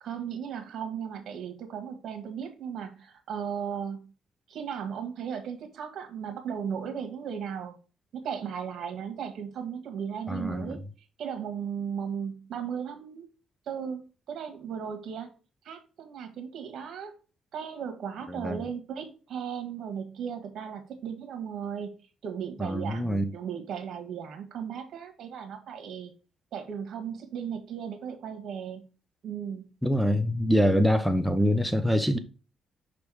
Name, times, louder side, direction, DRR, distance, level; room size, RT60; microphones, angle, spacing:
voice 1, 0.0-4.1 4.5-7.8 8.1-10.8 11.2-13.3 13.7-15.3 15.6-17.1 17.5-21.9 22.2-26.1 26.5-28.8 29.2-29.7, right 7 dB, 70° right, 1.5 m, -36 dB
voice 2, 10.3-10.8 18.3-18.6 22.6-23.2 29.8-32.2, equal, ahead, 0.7 m, -25 dB
6.3 x 3.5 x 4.7 m
cardioid pair, 90°, 0 cm